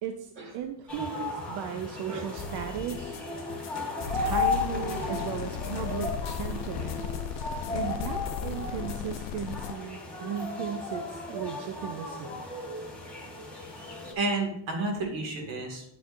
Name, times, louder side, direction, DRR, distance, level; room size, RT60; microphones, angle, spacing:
voice 1, 0.0-3.2 4.1-7.0 7.7-12.5, right 8 dB, 55° right, 7 dB, 0.5 m, -36 dB
sound 1, 0.9-14.1, left 3 dB, 5° left, 1.4 m, -35 dB
sound 2, 2.4-9.7, left 2 dB, 35° left, 0.9 m, -42 dB
sound 3, 4.1-9.7, left 12 dB, 80° left, 0.6 m, -36 dB
voice 2, 14.2-15.8, right 2 dB, 70° right, 2 dB, 2.2 m, -31 dB
9.4 x 7.7 x 2.6 m, 0.78 s
cardioid pair, 175°, 48 cm